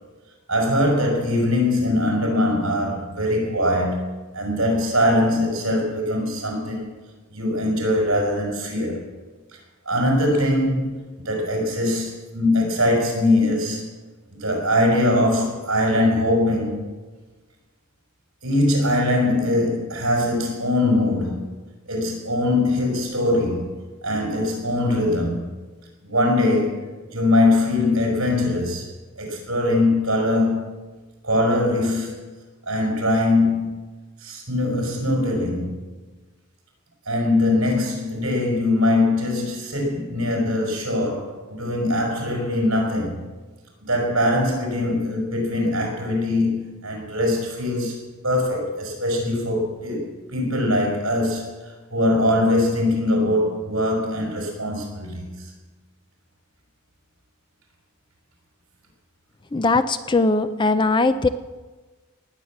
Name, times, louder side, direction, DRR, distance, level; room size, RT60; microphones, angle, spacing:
voice 1, 0.5-4.1 4.3-6.9 7.3-9.0 9.9-13.8 14.4-16.9 18.4-21.5 21.9-25.5 26.0-28.8 29.2-30.7 31.2-32.3 32.7-33.9 34.2-35.8 37.1-43.2 43.8-48.0 48.2-55.3, left 1 dB, 65° right, 0 dB, 5.4 m, -22 dB
voice 2, 59.5-61.3, left 3 dB, 20° left, 11 dB, 0.4 m, -20 dB
19.0 x 8.7 x 7.3 m, 1.3 s
head